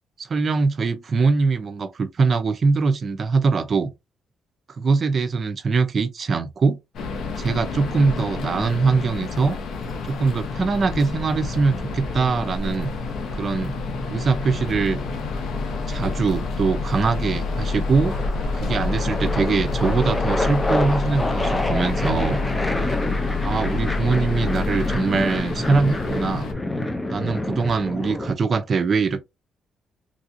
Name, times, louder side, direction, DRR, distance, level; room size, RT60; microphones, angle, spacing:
voice 1, 0.2-3.9 4.8-6.8 7.4-9.6 10.1-12.9 13.3-13.8 14.1-15.0 15.9-18.2 18.5-22.4 23.4-26.5 27.1-29.2, right 4 dB, 45° right, 0.5 m, -22 dB
sound 1, 6.9-26.5, left 4 dB, 70° left, 0.7 m, -31 dB
sound 2, 9.7-25.0, left 3 dB, 50° left, 2.2 m, -29 dB
sound 3, 10.4-11.6 13.4-14.7 15.6-16.1 16.4-28.3, left 1 dB, 15° left, 0.5 m, -28 dB
3.3 x 2.6 x 2.5 m
cardioid pair, 90°, 0 cm